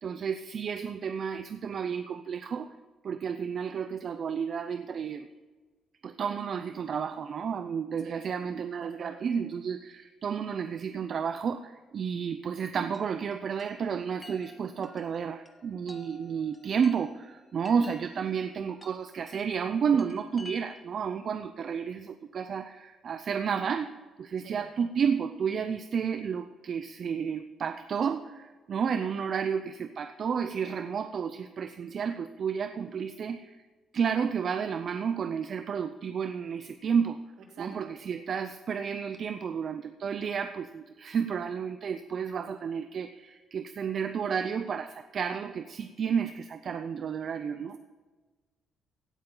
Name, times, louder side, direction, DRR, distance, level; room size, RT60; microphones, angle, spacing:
voice 1, 0.0-2.7 3.0-5.3 6.0-23.9 24.2-33.6 33.9-37.2 37.6-47.8, right 6 dB, 55° right, 9 dB, 0.5 m, -31 dB
voice 2, 8.0-9.3 24.4-24.6 37.4-37.9 39.2-39.5, right 5 dB, 75° right, 2 dB, 2.5 m, -49 dB
Chime, 12.9-21.1, left 2 dB, 15° left, 1.3 m, -53 dB
16.5 x 8.6 x 3.9 m, 1.3 s
cardioid pair, 90°, 0 cm